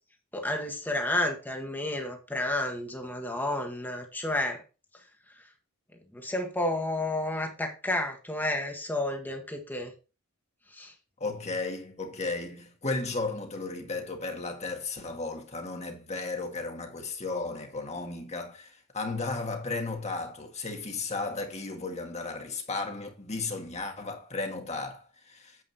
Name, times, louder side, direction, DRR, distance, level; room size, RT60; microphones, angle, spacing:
voice 1, 0.3-4.6 6.1-9.9 10.7-10.9, left 1 dB, 10° left, 1.6 m, -31 dB
voice 2, 11.2-25.6, left 3 dB, 30° left, 1.8 m, -34 dB
8.9 x 8.3 x 2.8 m
head